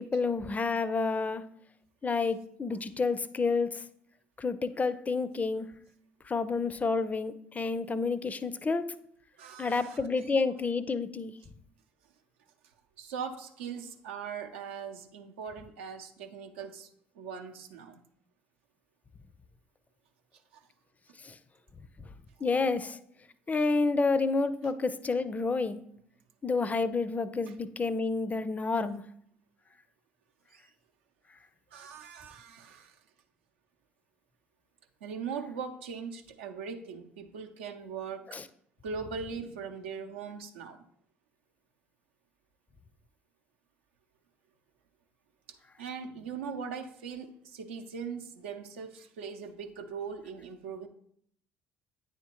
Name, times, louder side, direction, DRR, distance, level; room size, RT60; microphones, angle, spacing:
voice 1, 0.0-1.4 2.0-3.8 4.4-5.7 6.3-8.9 9.6-11.3 21.2-21.4 22.4-23.0 23.5-25.8 26.4-29.0 38.3-38.5, left 4 dB, 25° left, 14 dB, 0.5 m, -29 dB
voice 2, 9.4-10.0 13.0-16.9 17.2-18.0 27.5-27.6 30.5-30.6 31.7-33.0 35.0-38.3 38.8-40.8 45.5-50.9, right 6 dB, 80° right, 5 dB, 0.6 m, -40 dB
9.3 x 3.6 x 3.0 m, 0.67 s
hypercardioid pair, 60°, 6 cm